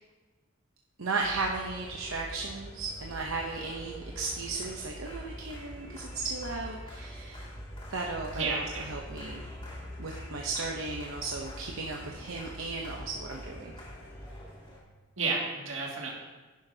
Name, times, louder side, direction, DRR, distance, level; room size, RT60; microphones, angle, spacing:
voice 1, 1.0-7.5 7.9-9.5 10.0-13.8, right 3 dB, 85° right, 0 dB, 0.8 m, -35 dB
sound 1, 1.2-14.8, equal, 25° left, 2.4 m, -44 dB
voice 2, 8.3-8.9 15.2-16.1, right 3 dB, 70° right, -2 dB, 2.2 m, -31 dB
11.0 x 10.0 x 2.8 m, 1.3 s
head